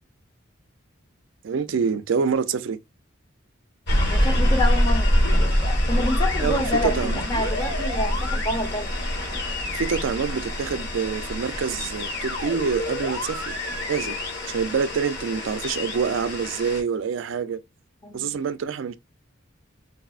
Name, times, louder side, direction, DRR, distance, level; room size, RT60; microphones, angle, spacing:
voice 1, 1.4-2.8 6.4-7.2 9.7-13.5 13.9-14.2 14.5-17.6 18.1-18.9, right 6 dB, 75° right, 0.4 m, -26 dB
sound 1, 3.9-16.8, equal, 55° left, 1.1 m, -25 dB
voice 2, 4.1-5.1 5.6-9.0 18.0-18.4, left 1 dB, 20° left, 0.5 m, -28 dB
3.9 x 2.0 x 2.3 m
head